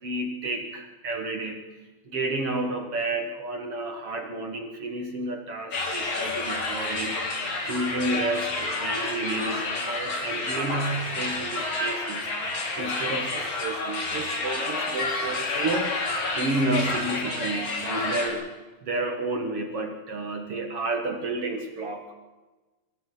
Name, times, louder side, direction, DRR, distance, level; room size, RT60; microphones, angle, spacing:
voice 1, 0.0-1.6 2.1-7.2 7.6-12.3 12.8-18.5 18.8-22.1, right 2 dB, 50° right, 4 dB, 1.9 m, -31 dB
sound 1, 5.7-18.3, left 2 dB, 50° left, 5.0 m, -29 dB
23.0 x 16.0 x 8.3 m, 1.2 s
omnidirectional pair, 4.4 m